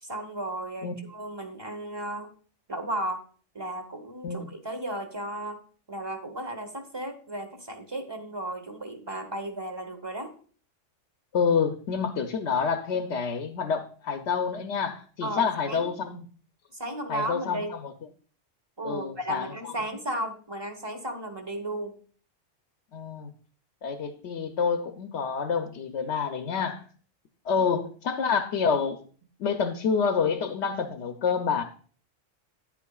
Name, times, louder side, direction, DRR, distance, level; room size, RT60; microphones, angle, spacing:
voice 1, 0.0-2.3 2.7-3.2 3.5-5.6 5.9-10.3 15.2-15.9 16.7-17.8 18.8-21.9 29.4-29.5, right 1 dB, 25° right, 6 dB, 0.9 m, -34 dB
voice 2, 11.3-16.3 17.1-17.9 18.8-19.7 22.9-23.3 23.8-26.8 27.4-29.0 29.4-31.6, left 6 dB, 65° left, 6 dB, 0.9 m, -28 dB
10.0 x 8.3 x 2.3 m, 0.43 s
omnidirectional pair, 1.3 m